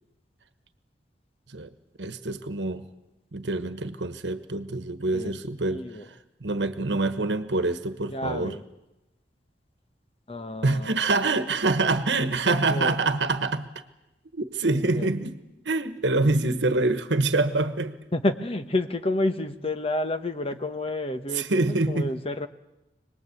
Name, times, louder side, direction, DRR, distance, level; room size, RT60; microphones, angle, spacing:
voice 1, 2.0-2.9 3.3-8.6 10.6-13.7 14.3-17.9 21.3-22.1, right 2 dB, 85° right, 10 dB, 1.2 m, -26 dB
voice 2, 5.7-6.0 8.1-8.6 10.3-10.9 12.5-13.0 14.7-15.1 18.1-22.5, left 1 dB, 30° left, 8 dB, 1.1 m, -30 dB
26.0 x 20.0 x 8.3 m, 0.97 s
head